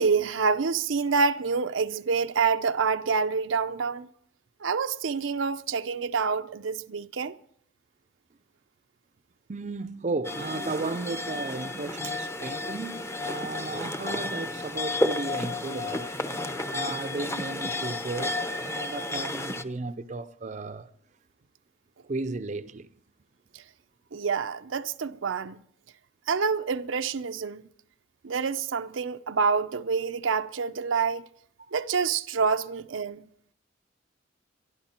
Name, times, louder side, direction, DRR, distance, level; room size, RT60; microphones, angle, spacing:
voice 1, 0.0-4.1 4.6-7.3 23.5-23.6 24.1-25.6 26.3-27.6 28.2-31.3 31.7-33.3, right 5 dB, 85° right, 0.6 m, -27 dB
voice 2, 9.5-16.1 16.7-18.4 18.6-20.9 22.1-22.9, right 3 dB, 40° right, 0.5 m, -34 dB
sound 1, 10.2-19.6, left 2 dB, 15° left, 0.7 m, -32 dB
23.5 x 11.5 x 4.4 m
head